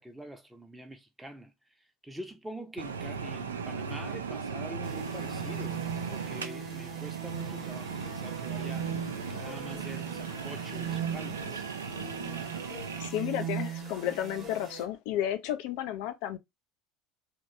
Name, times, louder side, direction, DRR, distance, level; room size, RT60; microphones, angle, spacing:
voice 1, 0.0-1.5 2.0-5.8 6.1-8.9 9.3-11.7, equal, 5° right, 0.6 m, -45 dB
sound 1, 2.8-13.1, right 5 dB, 80° right, 0.3 m, -37 dB
sound 2, 4.8-14.8, right 9 dB, 40° right, 0.9 m, -39 dB
sound 3, 8.9-14.9, left 4 dB, 40° left, 0.9 m, -51 dB
voice 2, 13.0-16.4, left 11 dB, 60° left, 0.4 m, -32 dB
2.9 x 2.2 x 2.6 m
figure-of-eight pair, 65°, 0 cm